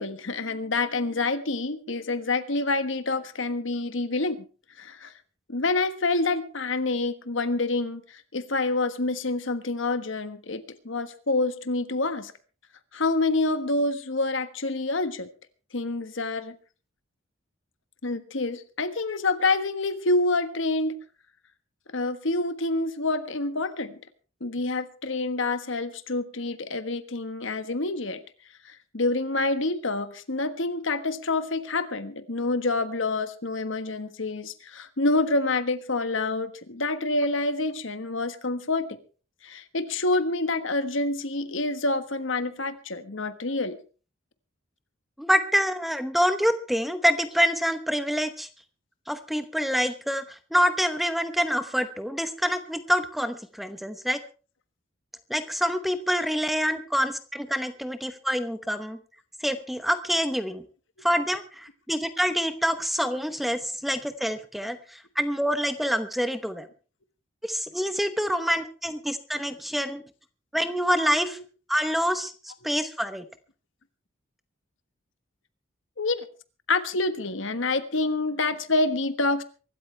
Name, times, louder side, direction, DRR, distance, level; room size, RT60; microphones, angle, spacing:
voice 1, 0.0-4.5 4.8-5.1 5.5-12.3 12.9-15.3 15.7-16.6 18.0-21.0 21.9-24.0 24.4-28.2 28.6-39.0 39.4-43.8 68.3-68.4 71.3-71.4 76.0-76.3 76.7-79.4, left 2 dB, 75° left, 10 dB, 1.4 m, -27 dB
voice 2, 45.2-48.5 49.1-54.2 55.3-59.0 59.4-60.6 61.0-66.7 67.4-70.0 70.5-71.4 71.7-73.2, equal, ahead, 10 dB, 0.9 m, -26 dB
24.0 x 13.0 x 3.3 m, 0.37 s
head